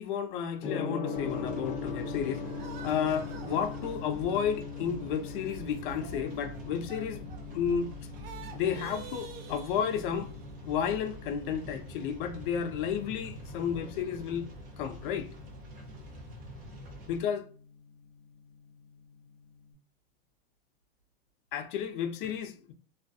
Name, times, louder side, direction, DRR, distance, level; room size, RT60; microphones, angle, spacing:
voice 1, 0.0-2.4 2.8-7.9 8.5-10.3 10.6-14.5 14.8-15.3 17.1-17.5 21.5-22.7, left 8 dB, 60° left, 0.6 m, -32 dB
Gong, 0.6-19.6, left 5 dB, 20° left, 0.8 m, -42 dB
sound 1, 1.1-17.2, equal, 30° right, 0.6 m, -46 dB
sound 2, 2.4-7.8 8.1-10.6, right 7 dB, 80° right, 0.6 m, -50 dB
2.5 x 2.2 x 2.5 m
supercardioid pair, 130°, 29 cm